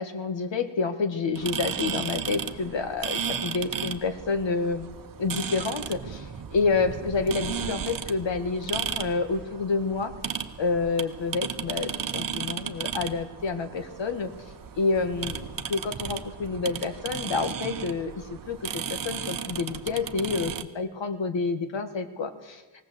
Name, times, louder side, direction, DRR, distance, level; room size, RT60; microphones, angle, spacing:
voice 1, 0.0-4.9 5.2-6.3 6.5-10.1 10.6-14.3 14.8-22.6, left 4 dB, 65° left, 8 dB, 1.9 m, -28 dB
sound 1, 1.4-20.6, right 7 dB, 45° right, 1.1 m, -35 dB
19.5 x 18.0 x 7.9 m, 1.2 s
wide cardioid pair, 160°, 49 cm